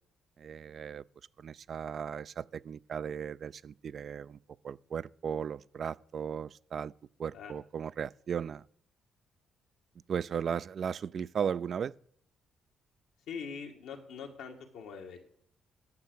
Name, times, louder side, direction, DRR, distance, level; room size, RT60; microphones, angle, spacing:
voice 1, 0.4-1.0 1.4-4.4 4.6-6.9 7.2-8.6 10.1-11.9, right 7 dB, 55° right, 0.3 m, -36 dB
voice 2, 7.3-7.9 13.3-15.2, left 6 dB, 85° left, 1.7 m, -43 dB
9.5 x 6.7 x 6.3 m
cardioid pair, 90°, 0 cm